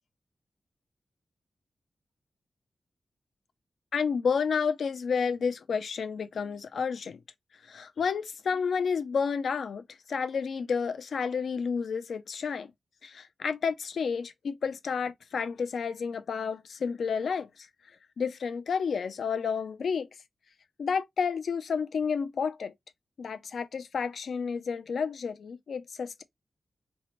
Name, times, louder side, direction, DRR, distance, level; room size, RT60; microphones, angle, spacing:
voice 1, 3.9-7.2 7.6-12.7 13.0-17.7 18.2-20.1 20.8-22.7 23.2-26.2, left 6 dB, 80° left, 0.3 m, -30 dB
2.8 x 2.0 x 2.8 m
wide cardioid pair, 90°, 0 cm